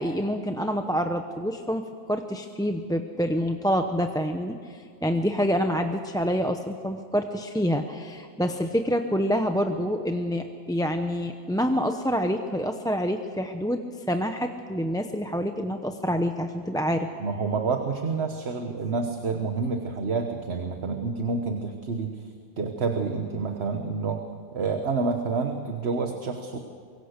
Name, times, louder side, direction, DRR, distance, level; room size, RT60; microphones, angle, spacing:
voice 1, 0.0-13.8 14.1-17.1, equal, 5° left, 5 dB, 0.7 m, -27 dB
voice 2, 17.2-22.3 22.6-24.2 24.5-26.6, right 4 dB, 65° right, 5 dB, 1.5 m, -28 dB
24.5 x 23.0 x 6.6 m, 2.2 s
omnidirectional pair, 1.2 m